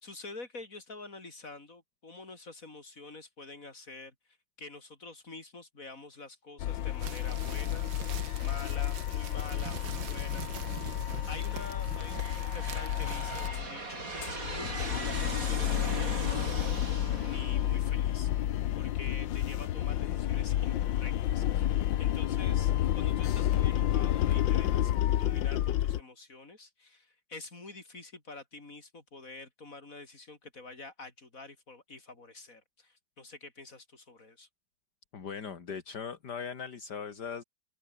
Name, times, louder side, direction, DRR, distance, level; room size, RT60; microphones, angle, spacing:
voice 1, 0.0-4.1 4.6-7.9 8.4-11.0 11.3-14.0 14.5-16.6 17.2-18.3 18.8-34.5, left 3 dB, 45° left, 4.7 m, -47 dB
sound 1, 6.6-13.7 14.0-26.0, left 12 dB, 80° left, 1.6 m, -30 dB
sound 2, 7.0-13.5, right 8 dB, 85° right, 2.3 m, -44 dB
Aircraft, 9.8-10.4 11.1-18.6, right 2 dB, 45° right, 5.0 m, -40 dB
voice 2, 35.1-37.4, left 6 dB, 60° left, 2.7 m, -39 dB
open air
omnidirectional pair, 2.0 m